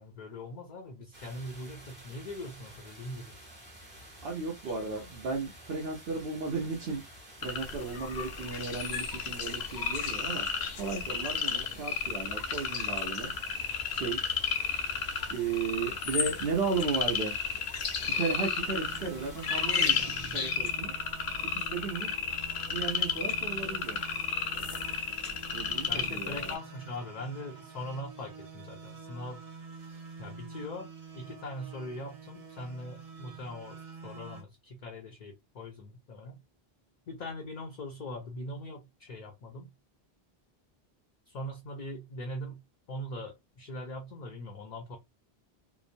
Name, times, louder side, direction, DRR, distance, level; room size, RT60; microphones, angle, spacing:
voice 1, 0.0-3.4 4.6-4.7 19.7-20.5 25.9-29.4 30.2-30.9 31.1-36.4 37.1-39.7 41.3-42.6 42.9-45.0, left 1 dB, 55° left, 0.5 m, -41 dB
sound 1, 1.1-20.0, right 1 dB, 30° right, 1.2 m, -51 dB
voice 2, 4.2-7.0 7.4-10.5 10.7-13.3 13.9-14.3 15.3-17.4 18.0-20.0 20.3-20.9 21.5-22.2 22.7-24.0 25.5-26.5, right 4 dB, 75° right, 0.9 m, -34 dB
sound 2, 7.4-26.6, left 6 dB, 85° left, 0.8 m, -33 dB
sound 3, 18.3-34.4, right 4 dB, 45° right, 0.6 m, -47 dB
2.8 x 2.0 x 2.5 m
omnidirectional pair, 1.0 m